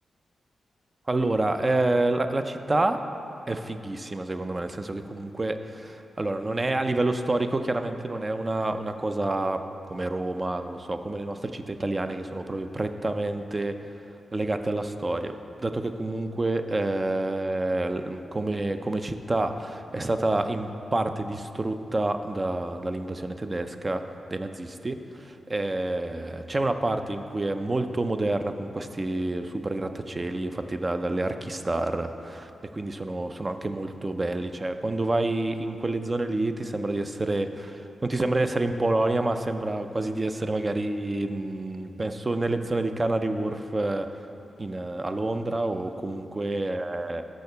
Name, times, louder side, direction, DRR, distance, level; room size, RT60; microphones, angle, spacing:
voice 1, 1.1-3.0 3.5-9.6 9.9-13.7 14.3-15.3 15.6-24.0 24.3-44.1 44.6-47.2, right 2 dB, 30° right, 8 dB, 0.4 m, -28 dB
6.3 x 5.7 x 6.6 m, 2.8 s
cardioid pair, 85°, 0 cm